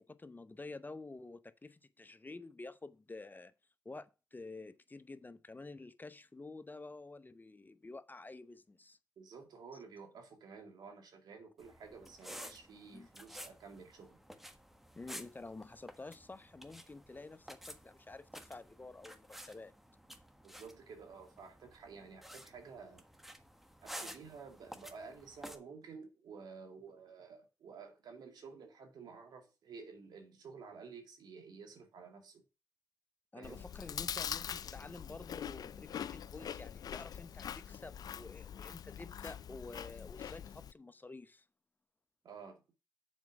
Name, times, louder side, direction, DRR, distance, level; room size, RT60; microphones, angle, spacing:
voice 1, 0.0-3.5 3.8-9.0 9.7-9.8 12.9-13.1 14.9-19.7 33.3-41.5, left 3 dB, 25° left, 0.8 m, -50 dB
voice 2, 9.2-14.2 20.4-23.1 23.8-32.4 33.4-33.7 42.2-42.6, right 5 dB, 80° right, 2.4 m, -52 dB
sound 1, 11.6-25.6, equal, 5° right, 1.4 m, -52 dB
Chewing mastication, 33.4-40.7, left 9 dB, 65° left, 0.4 m, -43 dB
7.4 x 4.6 x 6.1 m
supercardioid pair, 50°, 7 cm